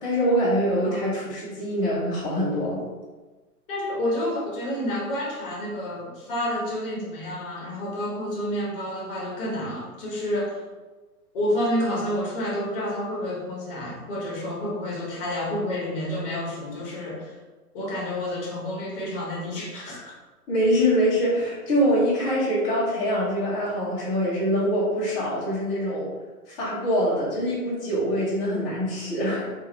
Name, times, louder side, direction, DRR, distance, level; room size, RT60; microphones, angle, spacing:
voice 1, 0.0-2.8 20.5-26.1 26.5-29.5, equal, 10° left, -11 dB, 0.7 m, -24 dB
voice 2, 3.7-10.6 11.3-17.3 17.7-20.2, left 1 dB, 35° left, -3 dB, 1.1 m, -29 dB
3.6 x 2.5 x 2.9 m, 1.2 s
hypercardioid pair, 150°, 45 cm